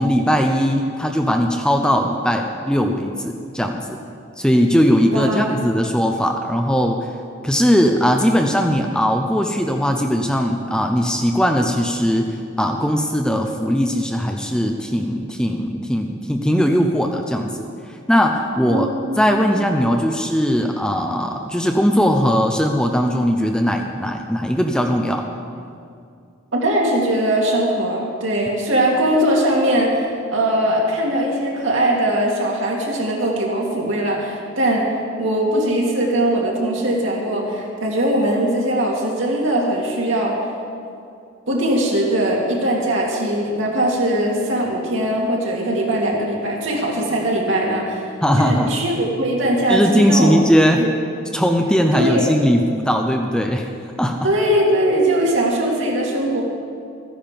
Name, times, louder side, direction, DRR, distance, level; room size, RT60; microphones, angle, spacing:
voice 1, 0.0-4.0 4.4-7.1 7.4-17.5 17.9-18.9 19.2-25.3 48.2-48.7 49.7-50.8 51.3-53.7 54.0-54.3, equal, 5° left, 3 dB, 0.6 m, -19 dB
voice 2, 5.1-5.5 18.7-19.6 26.5-30.1 30.3-34.9 35.2-40.3 41.5-50.4 50.8-50.9 51.9-52.3 54.2-56.4, right 1 dB, 70° right, -2 dB, 2.5 m, -20 dB
14.5 x 10.0 x 5.2 m, 2.4 s
head